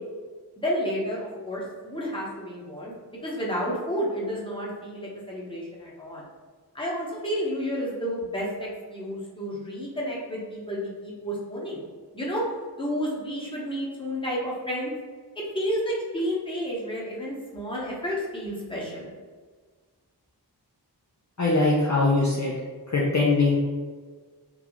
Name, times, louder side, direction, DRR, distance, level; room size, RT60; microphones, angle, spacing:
voice 1, 0.6-2.9 3.2-6.2 6.7-11.9 12.1-12.5 12.8-14.9 15.3-19.1, equal, 15° left, -5 dB, 1.0 m, -31 dB
voice 2, 21.4-22.6 22.9-23.6, left 3 dB, 45° left, -5 dB, 0.6 m, -22 dB
3.8 x 2.4 x 3.0 m, 1.5 s
wide cardioid pair, 50°, 40 cm